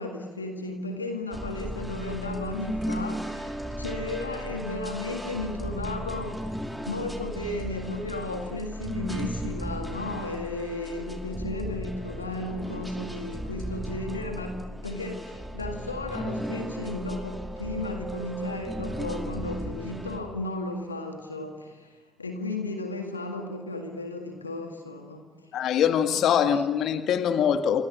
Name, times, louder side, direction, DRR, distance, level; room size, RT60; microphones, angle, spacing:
voice 1, 0.0-25.5 26.1-26.2 26.5-26.6, left 2 dB, 90° left, 5 dB, 1.9 m, -34 dB
sound 1, 1.3-20.2, equal, 5° right, 5.1 m, -36 dB
voice 2, 25.5-27.8, left 8 dB, 60° left, 8 dB, 2.0 m, -23 dB
28.0 x 24.0 x 8.6 m, 1.2 s
figure-of-eight pair, 45°, 0 cm